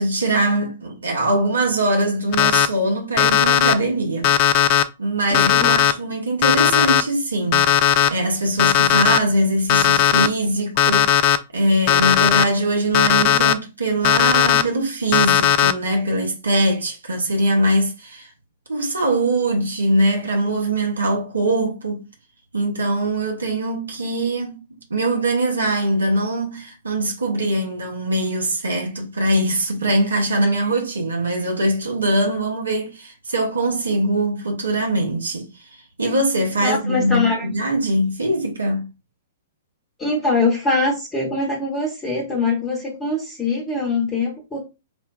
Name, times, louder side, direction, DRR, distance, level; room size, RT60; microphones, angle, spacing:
voice 1, 0.0-4.3 5.0-7.8 8.1-18.3 18.7-22.0 22.5-35.5 36.0-38.9, right 1 dB, 75° right, 1.0 m, -22 dB
Alarm, 2.3-2.7 3.2-3.7 4.2-4.8 5.3-5.9 6.4-7.0 7.5-8.1 8.6-9.2 9.7-10.3 10.8-11.4 11.9-12.4 12.9-13.5 14.0-14.6 15.1-15.7, left 10 dB, 40° left, 0.3 m, -16 dB
voice 2, 5.3-5.7 36.6-37.5 40.0-44.6, left 3 dB, 15° left, 1.1 m, -23 dB
4.3 x 2.2 x 2.4 m
figure-of-eight pair, 110°, 0 cm